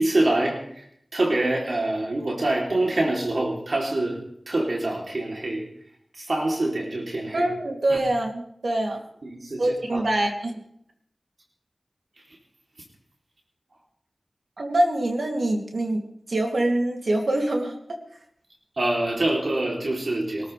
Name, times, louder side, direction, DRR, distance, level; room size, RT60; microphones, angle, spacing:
voice 1, 0.0-4.2 4.5-5.7 6.1-7.5 7.9-8.0 9.2-10.0 12.2-12.4 18.8-20.5, right 2 dB, 70° right, -1 dB, 3.2 m, -25 dB
voice 2, 7.3-9.0 9.6-10.6 14.6-16.0 16.3-18.0, right 1 dB, 85° right, 2 dB, 2.7 m, -24 dB
24.0 x 13.5 x 3.4 m, 0.68 s
wide cardioid pair, 60°, 0 cm